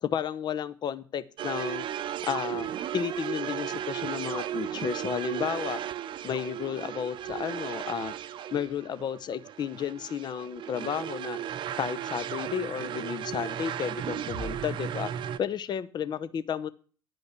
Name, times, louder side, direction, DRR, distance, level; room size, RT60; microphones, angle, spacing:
voice 1, 0.0-1.9 2.3-5.8 6.2-8.1 8.5-11.4 11.8-15.1 15.4-16.7, left 8 dB, 40° left, 14 dB, 0.8 m, -32 dB
sound 1, 1.4-15.4, right 10 dB, 45° right, 0.7 m, -35 dB
10.5 x 5.3 x 8.1 m, 0.40 s
hypercardioid pair, 65°, 11 cm